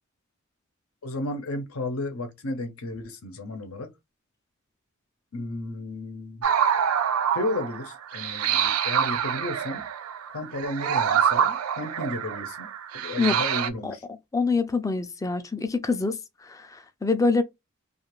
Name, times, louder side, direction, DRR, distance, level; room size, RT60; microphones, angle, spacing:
voice 1, 1.0-3.9 5.3-6.5 7.3-9.9 10.3-14.0, left 2 dB, 90° left, 0.7 m, -33 dB
sound 1, 6.4-13.7, right 8 dB, 90° right, 0.4 m, -26 dB
voice 2, 14.3-17.4, left 4 dB, 15° left, 0.3 m, -25 dB
2.4 x 2.4 x 3.0 m
head